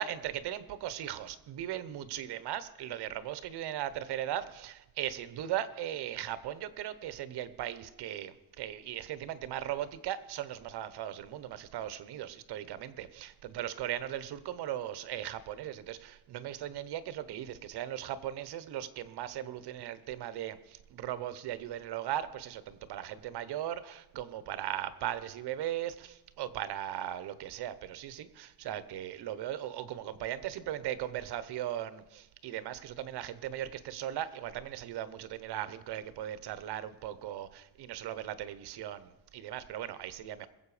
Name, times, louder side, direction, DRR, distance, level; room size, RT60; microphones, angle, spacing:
voice 1, 0.0-40.5, right 11 dB, 60° right, 15 dB, 0.9 m, -38 dB
22.0 x 7.7 x 4.9 m, 0.94 s
cardioid pair, 160°, 44 cm